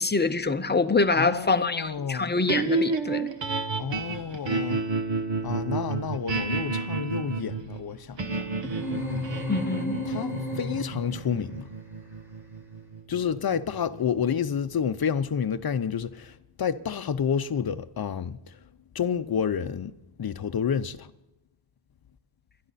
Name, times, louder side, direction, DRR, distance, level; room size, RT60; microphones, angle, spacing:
voice 1, 0.0-3.3 9.5-10.0, left 3 dB, 20° left, 0.8 m, -25 dB
voice 2, 1.2-2.4 3.8-4.8 5.4-8.7 10.1-11.7 13.1-18.6 18.9-19.9 20.2-21.1, left 7 dB, 50° left, 0.7 m, -29 dB
sound 1, 2.5-14.8, right 4 dB, 60° right, 1.3 m, -31 dB
sound 2, 8.6-11.3, left 1 dB, 5° right, 3.2 m, -32 dB
29.0 x 11.5 x 4.2 m
wide cardioid pair, 150°, 49 cm